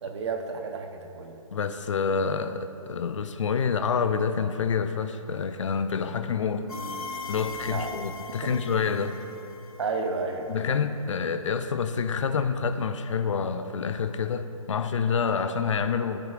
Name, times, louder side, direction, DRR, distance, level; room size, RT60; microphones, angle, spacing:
voice 1, 0.0-1.4 7.7-7.9 8.4-8.6 9.8-10.5, right 4 dB, 50° right, 4 dB, 1.0 m, -31 dB
voice 2, 1.5-6.7 7.3-9.1 10.5-16.2, left 6 dB, 60° left, 10 dB, 0.6 m, -27 dB
sound 1, 6.7-10.4, left 3 dB, 80° left, 1.4 m, -39 dB
14.0 x 8.5 x 2.5 m, 2.8 s
hypercardioid pair, 150°, 18 cm